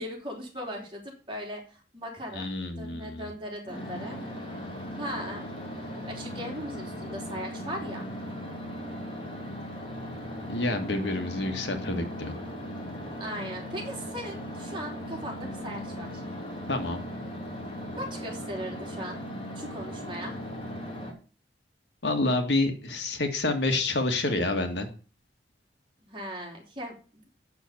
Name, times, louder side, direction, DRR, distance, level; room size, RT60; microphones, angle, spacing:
voice 1, 0.0-2.5 2.8-4.2 5.0-5.5 6.1-8.1 13.2-16.2 18.0-19.2 19.6-20.4 26.0-27.4, equal, 30° right, 0 dB, 3.4 m, -38 dB
voice 2, 2.3-3.3 10.5-12.4 16.7-17.0 22.0-24.9, left 2 dB, 85° left, 5 dB, 2.0 m, -28 dB
sound 1, 3.6-21.1, equal, 30° left, 3.2 m, -38 dB
8.1 x 7.0 x 8.0 m, 0.37 s
head